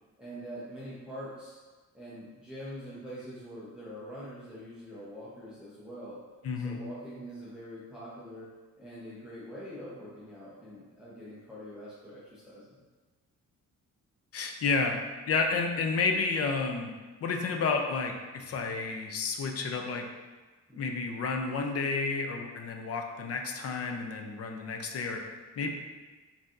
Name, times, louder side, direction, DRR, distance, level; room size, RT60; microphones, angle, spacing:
voice 1, 0.2-1.6 1.9-6.2 6.6-8.5 8.8-12.8 20.7-21.0, equal, 5° right, -9 dB, 0.6 m, -44 dB
voice 2, 6.4-6.8 14.3-15.0 15.3-16.9 17.2-20.0 20.8-25.2 25.6-25.7, left 4 dB, 50° left, 3 dB, 0.5 m, -31 dB
5.1 x 2.7 x 2.4 m, 1.3 s
wide cardioid pair, 165°, 31 cm